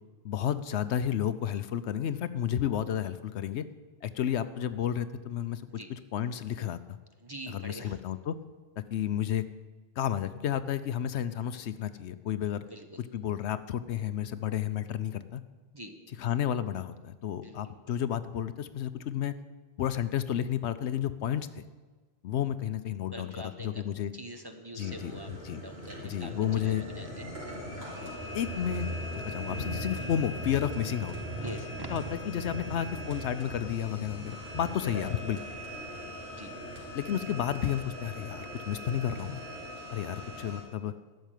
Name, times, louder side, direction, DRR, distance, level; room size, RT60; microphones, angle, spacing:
voice 1, 0.2-3.6 4.0-7.0 7.5-8.4 8.8-9.4 10.0-12.6 13.0-15.4 16.2-19.3 19.8-21.6 22.2-24.1 24.7-25.6 26.0-26.8 28.0-28.9 29.1-31.1 31.9-35.4 36.9-39.4 39.9-40.9, left 10 dB, 70° left, 12 dB, 0.9 m, -32 dB
voice 2, 7.2-8.0 12.7-13.0 15.7-15.9 17.4-17.7 23.1-23.7 24.1-27.3 31.4-31.9 36.3-36.5, right 1 dB, 20° right, 5 dB, 0.9 m, -44 dB
sound 1, 24.8-40.6, equal, 60° right, 3.9 m, -39 dB
13.0 x 6.5 x 9.1 m, 1.3 s
omnidirectional pair, 1.2 m